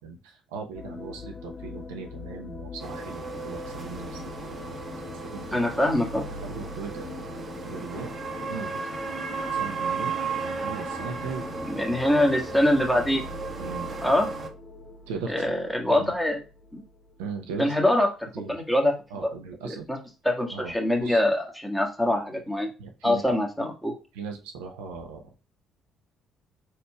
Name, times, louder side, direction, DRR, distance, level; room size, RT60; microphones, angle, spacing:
voice 1, 0.0-4.7 5.2-5.7 6.4-7.0 7.3-8.1 8.5-8.8 9.5-10.1 10.4-11.5 13.6-13.9 15.1-15.4 15.9-16.1 17.2-17.8 18.3-18.6 19.1-19.9 20.5-20.7 21.0-21.2 22.0-22.2 22.8-23.2 24.1-25.3, right 5 dB, 70° right, 2 dB, 0.7 m, -38 dB
sound 1, 0.7-18.3, left 3 dB, 35° left, 0.7 m, -43 dB
sound 2, 2.8-14.5, right 4 dB, 35° right, 1.1 m, -35 dB
voice 2, 5.5-6.3 11.7-13.2 14.0-14.3 15.3-16.4 16.7-16.8 17.6-18.1 18.4-18.9 19.6-20.0 20.2-22.7 23.0-23.9, left 1 dB, 5° left, 1 dB, 1.6 m, -24 dB
5.1 x 4.3 x 2.3 m, 0.31 s
figure-of-eight pair, 50°, 0 cm